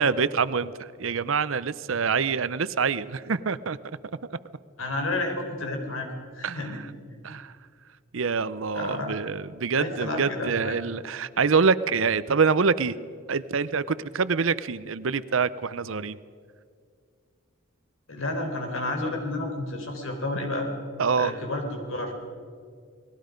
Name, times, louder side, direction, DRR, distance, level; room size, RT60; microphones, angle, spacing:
voice 1, 0.0-3.8 4.3-4.4 6.4-6.8 7.2-7.5 8.1-12.9 13.3-16.2 21.0-21.3, right 5 dB, 65° right, 16 dB, 0.6 m, -25 dB
voice 2, 4.8-6.1 6.3-6.8 8.7-9.2 9.8-10.7 18.1-20.7 21.2-22.1, left 2 dB, 70° left, 4 dB, 4.2 m, -30 dB
29.0 x 20.0 x 5.2 m, 2.1 s
head